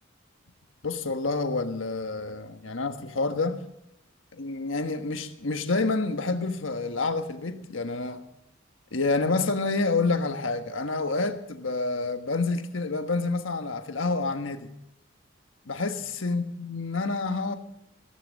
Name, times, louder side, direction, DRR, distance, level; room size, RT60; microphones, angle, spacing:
voice 1, 0.8-3.6 4.3-8.2 8.9-14.7 15.7-17.5, left 3 dB, 75° left, 1.4 m, -28 dB
16.0 x 14.5 x 5.3 m
head